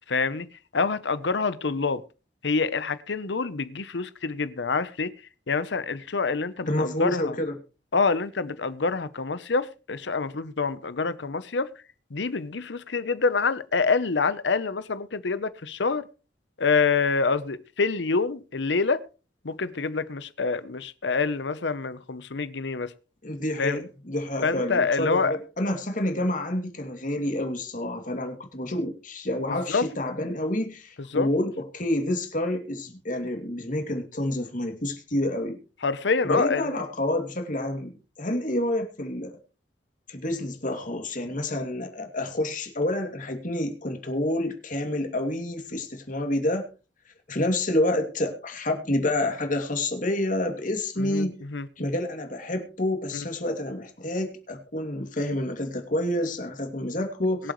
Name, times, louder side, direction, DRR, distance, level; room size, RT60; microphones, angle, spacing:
voice 1, 0.1-0.5 0.7-2.0 2.4-5.1 5.5-7.3 7.9-11.7 12.1-16.1 16.6-19.0 19.4-22.9 23.6-23.8 24.4-25.4 29.5-29.8 31.1-31.3 35.8-36.7 51.0-51.7 53.1-53.2 57.4-57.5, left 4 dB, 85° left, 0.8 m, -26 dB
voice 2, 6.7-7.5 23.2-35.6 36.2-37.9 38.2-39.4 40.1-46.7 47.3-51.4 51.8-57.5, left 1 dB, 50° left, 2.6 m, -28 dB
23.0 x 7.7 x 3.2 m
head